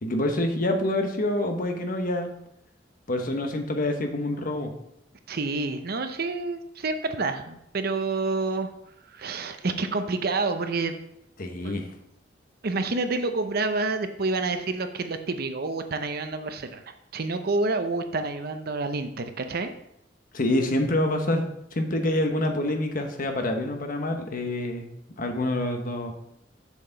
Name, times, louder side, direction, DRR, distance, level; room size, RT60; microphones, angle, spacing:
voice 1, 0.0-2.3 3.1-4.7 11.4-11.9 20.3-21.4 21.7-24.9 25.2-26.1, left 1 dB, 50° left, 4 dB, 1.1 m, -26 dB
voice 2, 5.3-8.7 9.1-11.0 11.6-11.8 12.6-16.8 17.1-19.7, right 3 dB, 55° right, 8 dB, 0.7 m, -28 dB
7.1 x 6.8 x 3.9 m, 0.77 s
head